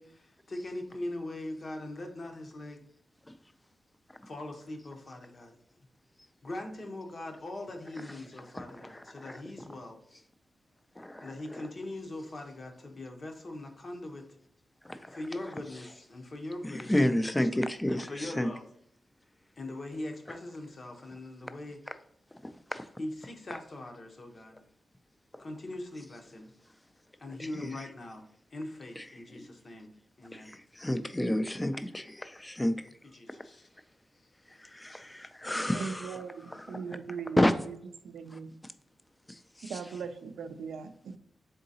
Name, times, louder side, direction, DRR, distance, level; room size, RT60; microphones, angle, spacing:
voice 1, 0.0-2.8 4.3-5.6 6.4-10.0 11.2-14.3 15.1-16.9 17.9-18.6 19.6-21.8 23.0-24.6 25.4-26.5 27.2-28.2 28.5-29.9 30.2-30.5 33.1-33.7, left 1 dB, 50° left, 0.8 m, -41 dB
voice 2, 8.6-9.4 11.0-11.6 14.8-15.2 16.6-18.5 22.4-22.9 27.6-27.7 29.0-29.1 29.3-29.5 30.3-32.8 34.6-36.1 36.5-36.8 37.4-37.5 38.3-38.4 39.3-39.8, left 1 dB, 15° left, 0.3 m, -31 dB
voice 3, 35.7-37.4 37.6-37.8 38.0-38.5 39.6-41.2, right 6 dB, 90° right, 0.3 m, -39 dB
3.8 x 3.8 x 2.7 m
cardioid pair, 75°, 0 cm